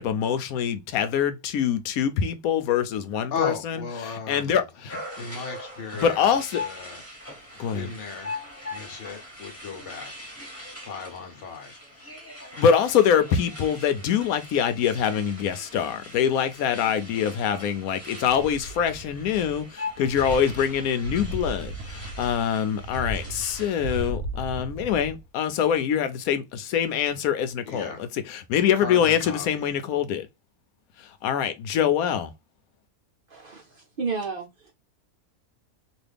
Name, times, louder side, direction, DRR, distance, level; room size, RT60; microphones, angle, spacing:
voice 1, 0.0-5.0 6.0-6.6 7.6-7.9 12.6-27.9 28.3-30.3 31.2-32.3, left 8 dB, 85° left, 1.1 m, -24 dB
voice 2, 3.3-4.6 5.2-7.0 7.7-8.3 8.7-10.3 10.8-12.1 27.6-28.1 28.7-29.7, left 5 dB, 60° left, 1.1 m, -36 dB
sound 1, 4.9-24.1, left 2 dB, 10° left, 1.3 m, -41 dB
sound 2, 18.2-19.7 20.0-25.3 25.6-25.7, right 1 dB, 80° right, 1.1 m, -36 dB
voice 3, 33.3-34.7, right 4 dB, 55° right, 0.6 m, -32 dB
3.1 x 2.5 x 3.3 m
omnidirectional pair, 1.5 m